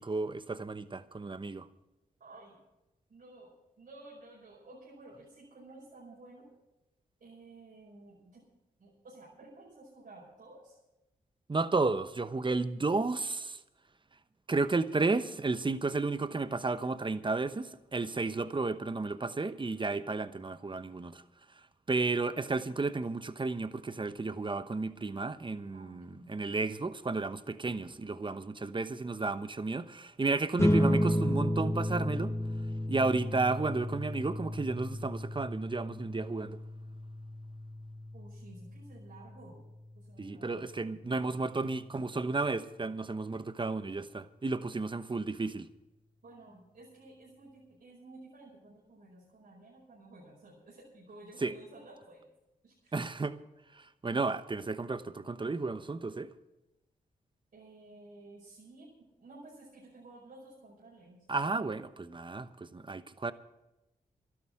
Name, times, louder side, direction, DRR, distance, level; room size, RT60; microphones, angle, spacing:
voice 1, 0.0-1.7 11.5-13.6 14.5-21.2 21.9-32.3 32.9-36.6 40.2-45.7 51.4-51.5 52.9-53.4 53.7-56.3 61.3-63.3, right 3 dB, 30° right, 1.0 m, -33 dB
voice 2, 2.2-2.5 3.1-3.5 3.8-6.5 7.2-8.4 8.8-10.8 25.7-26.3 38.1-39.7 39.9-40.7 46.2-52.3 52.6-53.0 57.5-58.9 59.2-61.2, right 2 dB, 70° right, 5.2 m, -53 dB
sound 1, 30.6-41.4, left 1 dB, 15° left, 1.2 m, -33 dB
12.5 x 11.0 x 7.7 m
supercardioid pair, 45°, 16 cm